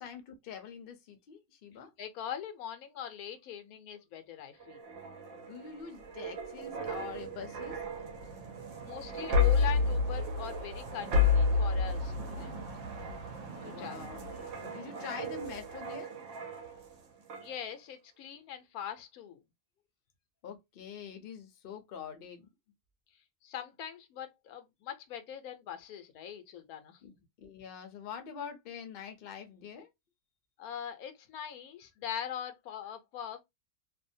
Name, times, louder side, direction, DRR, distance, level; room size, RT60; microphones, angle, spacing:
voice 1, 0.0-1.9 5.3-7.8 13.5-16.1 20.4-22.5 27.0-27.1 27.4-29.9, left 7 dB, 55° left, 0.7 m, -45 dB
voice 2, 2.0-4.8 8.8-12.7 13.6-14.1 17.4-19.4 23.4-27.1 30.6-33.4, left 9 dB, 85° left, 1.1 m, -42 dB
sound 1, 4.6-16.9 17.3-17.5, left 4 dB, 65° right, 0.9 m, -32 dB
2.6 x 2.1 x 2.5 m
omnidirectional pair, 1.5 m